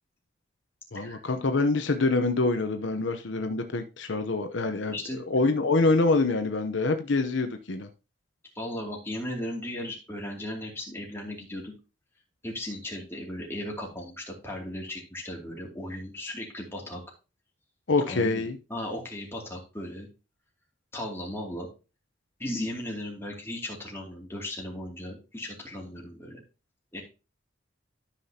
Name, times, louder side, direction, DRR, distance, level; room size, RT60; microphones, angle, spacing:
voice 1, 0.9-7.9 17.9-18.6, left 3 dB, 75° left, 0.8 m, -26 dB
voice 2, 4.9-5.2 8.5-11.7 12.4-17.0 18.1-18.4 18.7-20.1 20.9-21.7 22.4-26.4 26.9-27.0, left 1 dB, 15° left, 2.6 m, -36 dB
13.0 x 5.8 x 2.8 m
head